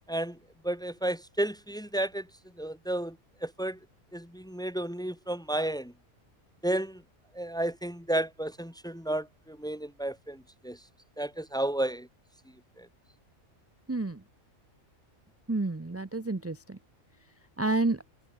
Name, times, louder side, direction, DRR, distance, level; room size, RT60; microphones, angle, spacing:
voice 1, 0.1-0.4 0.6-2.3 2.6-3.2 3.4-3.8 4.1-5.9 6.6-7.0 7.3-10.8 11.2-12.1 12.8-12.9, right 1 dB, 5° left, 0.8 m, -32 dB
voice 2, 13.9-14.2 15.5-16.8 17.6-18.0, right 2 dB, 15° right, 0.5 m, -29 dB
omnidirectional pair, 1.4 m